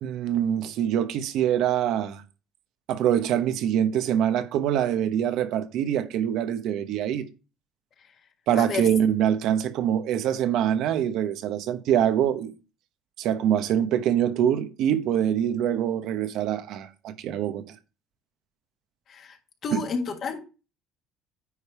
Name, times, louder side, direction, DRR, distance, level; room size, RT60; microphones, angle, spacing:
voice 1, 0.0-2.2 2.9-7.3 8.5-12.5 13.2-17.7 19.7-19.8, right 10 dB, 70° right, 0.9 m, -24 dB
voice 2, 8.5-8.9 19.1-19.4 19.6-20.4, left 5 dB, 50° left, 1.7 m, -31 dB
9.7 x 3.3 x 5.6 m
cardioid pair, 110°, 0 cm